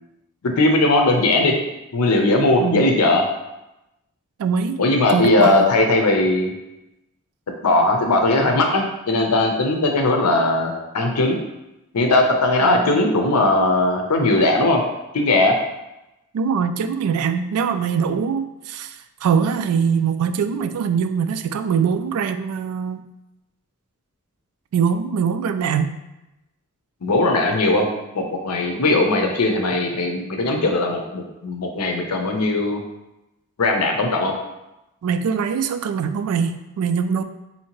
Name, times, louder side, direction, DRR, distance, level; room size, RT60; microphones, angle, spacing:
voice 1, 0.4-1.5 1.9-3.2 4.8-6.5 7.6-11.4 11.9-14.8 15.1-15.6 27.0-27.9 28.1-32.8 33.6-34.3, left 2 dB, 85° left, 3 dB, 0.6 m, -19 dB
voice 2, 4.4-4.8 5.1-5.7 12.6-13.0 16.3-23.0 24.7-25.9 28.7-28.8 35.0-37.2, right 6 dB, 75° right, 12 dB, 0.3 m, -22 dB
4.3 x 2.8 x 2.9 m, 0.94 s
head